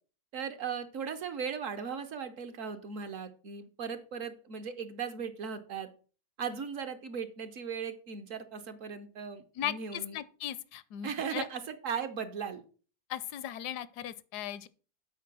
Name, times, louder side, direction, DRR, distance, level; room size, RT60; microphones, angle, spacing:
voice 1, 0.3-5.9 6.4-10.2 11.0-12.6, right 6 dB, 60° right, 1.0 m, -37 dB
voice 2, 9.6-11.4 13.1-14.7, left 11 dB, 80° left, 1.1 m, -38 dB
8.3 x 4.5 x 6.0 m
omnidirectional pair, 1.8 m